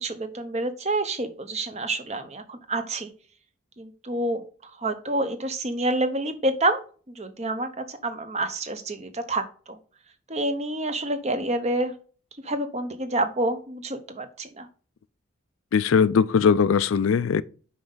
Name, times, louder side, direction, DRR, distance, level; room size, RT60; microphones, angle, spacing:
voice 1, 0.0-3.1 3.8-6.8 7.1-9.8 10.3-11.9 12.4-14.7, right 2 dB, 30° right, 0.8 m, -28 dB
voice 2, 15.7-17.4, left 6 dB, 80° left, 0.4 m, -20 dB
5.6 x 5.3 x 3.9 m
head